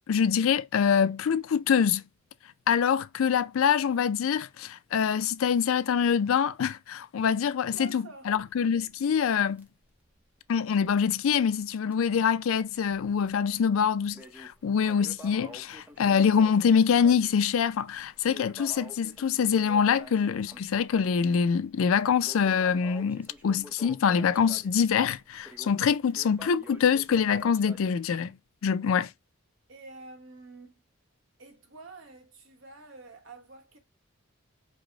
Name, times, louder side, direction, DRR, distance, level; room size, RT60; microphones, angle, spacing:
voice 1, 0.1-2.0 2.7-9.7 10.5-28.4 28.6-29.1, left 7 dB, 80° left, 0.4 m, -25 dB
voice 2, 7.6-8.3 29.7-30.7 31.4-33.8, right 3 dB, 70° right, 1.1 m, -48 dB
Crackle, 8.5-11.1 11.3-11.4 11.9-12.0 12.7-13.3 13.7-28.0, equal, 10° right, 0.6 m, -49 dB
4.9 x 2.1 x 3.8 m
head